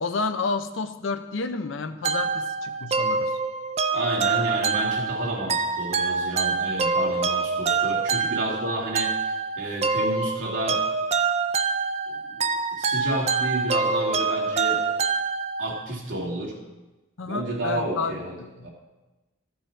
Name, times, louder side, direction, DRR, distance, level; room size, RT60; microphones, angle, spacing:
voice 1, 0.0-3.4 17.2-18.7, left 4 dB, 85° left, 9 dB, 0.7 m, -30 dB
sound 1, 2.0-15.9, right 4 dB, 35° right, 0.4 m, -26 dB
voice 2, 3.9-10.8 12.1-12.4 12.8-14.8 15.6-16.5 17.2-18.4 18.6-18.7, right 1 dB, 85° right, -3 dB, 2.3 m, -31 dB
13.5 x 5.5 x 4.4 m, 1.1 s
head